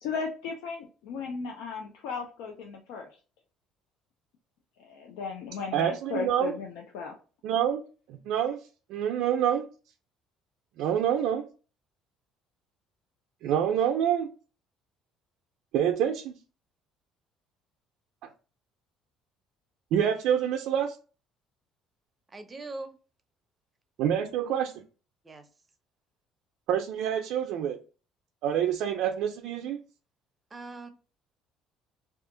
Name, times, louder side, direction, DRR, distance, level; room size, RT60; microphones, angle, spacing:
voice 1, 0.0-3.1 4.8-7.1, left 5 dB, 85° left, 0.5 m, -36 dB
voice 2, 5.7-6.5 7.4-7.8 8.1-8.6 8.9-9.7 10.8-11.5 13.4-14.3 15.7-16.3 18.2-18.3 19.9-21.0 24.0-24.7 26.7-27.8 28.4-29.8, right 9 dB, 75° right, 0.4 m, -27 dB
voice 3, 22.3-22.9 25.2-25.5 30.5-30.9, right 2 dB, 20° right, 0.6 m, -41 dB
2.7 x 2.4 x 3.7 m
cardioid pair, 120°, 0 cm